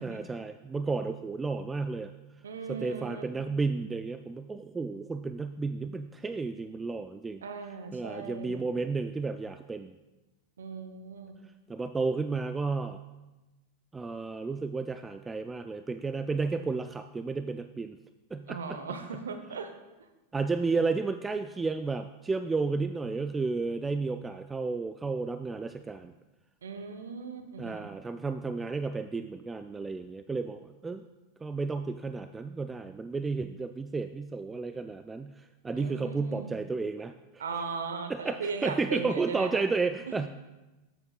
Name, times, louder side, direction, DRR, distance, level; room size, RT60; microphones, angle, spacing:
voice 1, 0.0-2.1 2.7-7.4 7.9-10.0 11.7-13.0 13.9-18.0 18.3-18.8 20.3-26.1 27.6-31.0 31.4-37.4 38.1-40.3, right 4 dB, 15° right, 9 dB, 0.3 m, -32 dB
voice 2, 2.4-3.3 7.4-8.7 10.6-11.4 18.5-19.7 26.6-27.9 35.7-36.5 37.4-39.7 40.1-40.2, right 5 dB, 80° right, 8 dB, 0.8 m, -38 dB
11.5 x 8.0 x 2.4 m, 1.1 s
hypercardioid pair, 90°, 0 cm